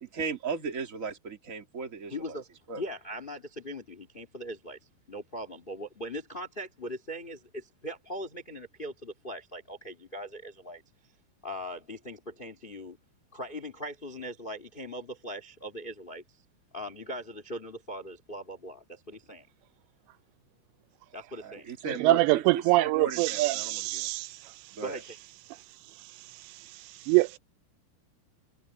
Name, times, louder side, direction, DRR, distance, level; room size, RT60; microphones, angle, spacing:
voice 1, 0.0-2.4 2.7-2.8 21.4-24.1 24.8-25.0, right 5 dB, 30° right, 1.6 m, -36 dB
voice 2, 2.1-2.5 2.8-4.8 5.1-10.8 11.4-13.0 13.3-16.2 16.7-19.5 21.1-21.7 24.8-25.0, equal, 60° left, 0.5 m, -40 dB
voice 3, 22.0-24.3 27.1-27.4, right 19 dB, 85° right, 2.8 m, -23 dB
omnidirectional pair, 5.1 m